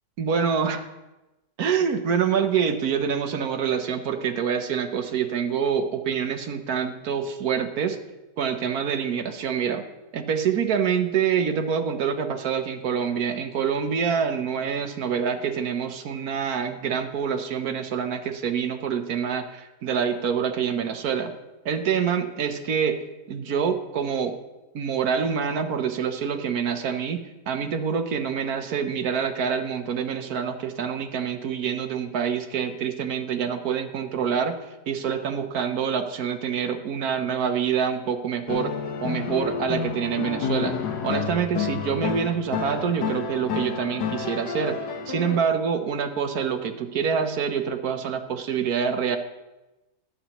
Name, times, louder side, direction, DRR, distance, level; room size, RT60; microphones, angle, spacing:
voice 1, 0.2-0.9 1.6-8.0 8.4-9.9 10.1-21.3 21.6-23.0 23.3-24.3 24.7-34.6 34.9-38.7 39.0-40.8 41.0-44.8 45.1-49.2, right 7 dB, 65° right, 7 dB, 1.3 m, -26 dB
sound 1, 38.5-45.4, left 6 dB, 70° left, 1.5 m, -30 dB
21.0 x 7.9 x 3.0 m, 1.0 s
omnidirectional pair, 1.9 m